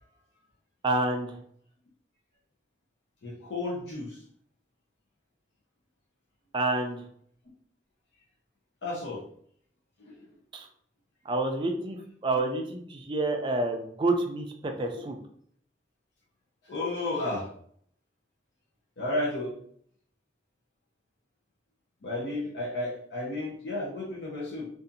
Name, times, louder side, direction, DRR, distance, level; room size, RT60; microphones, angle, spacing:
voice 1, 0.8-1.4 6.5-7.0 10.5-10.7 11.3-15.2, right 2 dB, 25° right, 4 dB, 0.3 m, -28 dB
voice 2, 3.2-4.2 8.8-9.2 10.1-10.2 16.6-17.5 19.0-19.5 22.0-24.7, left 2 dB, 70° left, -4 dB, 0.6 m, -32 dB
2.7 x 2.4 x 2.5 m, 0.62 s
head